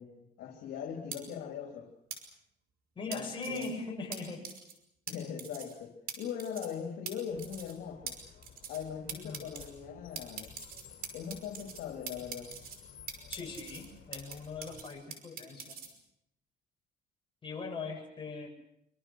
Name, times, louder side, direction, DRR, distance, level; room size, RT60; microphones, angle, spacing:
voice 1, 0.0-1.9 3.1-3.7 5.1-8.2 8.7-10.5 11.1-12.5, left 8 dB, 75° left, 2 dB, 3.7 m, -40 dB
sound 1, 1.1-1.2 2.1-2.2 3.1-3.7 4.1-4.2 4.4-4.7 5.1-5.2 5.4-5.7 6.1-6.2 6.4-6.7 7.1-7.2 7.4-7.7 8.1-8.2 8.4-8.8 9.1-9.7 10.1-11.8 12.1-12.8 13.1-14.3 14.6-15.9, right 8 dB, 65° right, 5.4 m, -42 dB
voice 2, 3.0-4.5 9.1-9.5 13.3-15.8 17.4-18.5, left 3 dB, 30° left, 0 dB, 7.9 m, -40 dB
Car, 7.3-14.8, left 8 dB, 60° left, 6.0 m, -55 dB
25.5 x 25.5 x 6.5 m, 0.79 s
cardioid pair, 110°, 17 cm